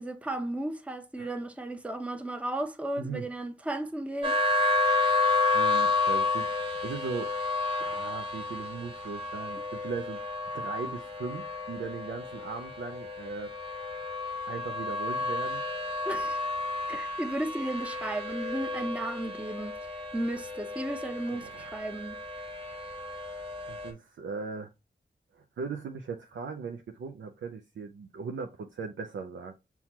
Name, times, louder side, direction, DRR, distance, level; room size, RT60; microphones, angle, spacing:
voice 1, 0.0-4.6 16.0-16.4 16.9-22.2, right 1 dB, 5° right, 0.6 m, -34 dB
sound 1, 4.2-23.9, left 3 dB, 25° right, 1.4 m, -31 dB
voice 2, 5.5-7.3 7.8-10.2 10.5-13.5 14.5-15.6 21.3-21.7 23.6-24.7 25.3-29.5, right 5 dB, 85° right, 0.4 m, -38 dB
5.6 x 2.2 x 2.9 m
cardioid pair, 40°, 20 cm